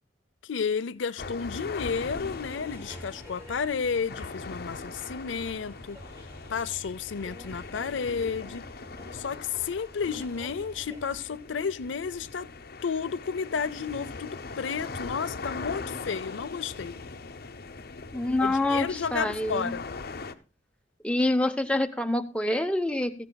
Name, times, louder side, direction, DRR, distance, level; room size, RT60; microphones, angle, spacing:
voice 1, 0.4-6.0 6.5-8.7 9.1-12.5 12.8-17.0 18.4-19.8, left 6 dB, 85° left, 0.6 m, -32 dB
sound 1, 1.2-20.3, left 3 dB, 55° left, 0.8 m, -41 dB
sound 2, 2.5-11.4, equal, 15° right, 1.8 m, -48 dB
voice 2, 18.1-19.7 21.0-23.1, left 1 dB, 5° left, 0.8 m, -26 dB
15.5 x 14.0 x 2.2 m
head